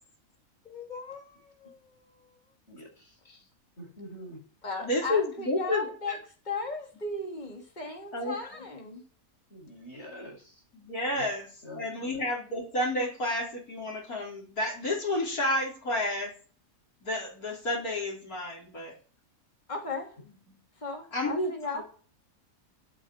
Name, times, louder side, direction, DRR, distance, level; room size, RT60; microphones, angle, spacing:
voice 1, 0.6-2.3 3.2-3.4 4.6-6.2 6.4-9.0 19.7-20.2 20.8-21.8, left 3 dB, 30° left, 1 dB, 3.1 m, -37 dB
voice 2, 2.7-3.2 3.8-4.4 9.5-10.6 11.1-11.3 11.6-12.2, equal, 50° left, 0 dB, 7.8 m, -46 dB
voice 3, 4.8-5.9 8.1-8.4 10.8-11.5 11.8-16.3 17.0-19.0 21.1-21.8, left 1 dB, 90° left, -3 dB, 5.3 m, -30 dB
13.0 x 9.2 x 8.9 m, 0.40 s
omnidirectional pair, 1.5 m